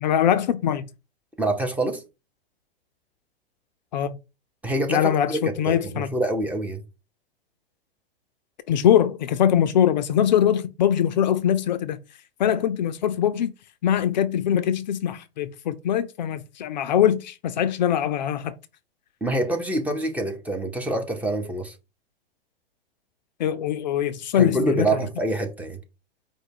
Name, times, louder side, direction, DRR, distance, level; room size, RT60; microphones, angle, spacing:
voice 1, 0.0-0.9 3.9-4.2 4.9-6.1 8.7-12.0 12.4-13.5 13.8-18.6 23.4-25.0, left 9 dB, 45° left, 0.4 m, -22 dB
voice 2, 1.4-2.0 4.6-6.8 19.2-21.7 24.3-25.8, right 1 dB, 5° right, 0.6 m, -26 dB
4.8 x 2.2 x 4.6 m
figure-of-eight pair, 105°, 31 cm